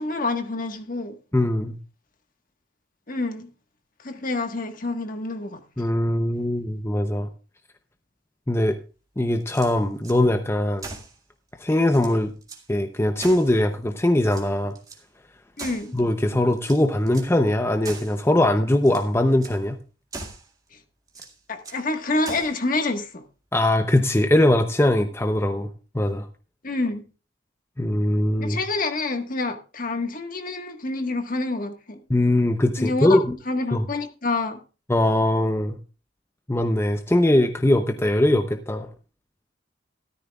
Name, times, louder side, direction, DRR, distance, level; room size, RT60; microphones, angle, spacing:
voice 1, 0.0-1.2 3.1-3.5 4.0-5.9 15.6-15.9 21.5-23.2 26.6-27.0 28.4-32.0 32.8-33.2 33.5-34.6, left 2 dB, 45° left, 1.5 m, -27 dB
voice 2, 1.3-1.8 5.8-7.3 8.5-8.8 9.2-10.9 11.6-12.3 12.7-14.7 15.9-19.8 23.5-25.7 25.9-26.3 27.8-28.6 32.1-33.4 33.7-33.9 34.9-35.8 36.5-38.9, left 1 dB, 15° left, 0.7 m, -21 dB
sound 1, 9.4-10.2 10.8-11.2 11.6-11.7 11.9-12.7 13.2-13.9 14.2-15.0 15.6-16.1 16.6-17.4 17.8-18.2 18.7-19.1 19.4-19.6 20.1-20.5 21.1-21.9 22.2-22.6, right 3 dB, 20° right, 2.0 m, -40 dB
14.0 x 13.0 x 2.4 m
head